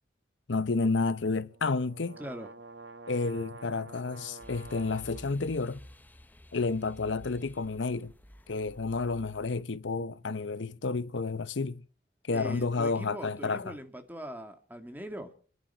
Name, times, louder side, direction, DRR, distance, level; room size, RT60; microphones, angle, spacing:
voice 1, 0.5-2.2 3.1-5.8 6.5-8.1 8.5-11.8 12.3-13.8, left 3 dB, 70° left, 0.8 m, -30 dB
sound 1, 1.5-5.4, right 3 dB, 65° right, 1.0 m, -48 dB
voice 2, 2.2-2.5 12.3-15.3, equal, 10° right, 1.8 m, -41 dB
sound 2, 4.4-9.6, equal, 10° left, 0.7 m, -52 dB
29.5 x 10.5 x 4.4 m
head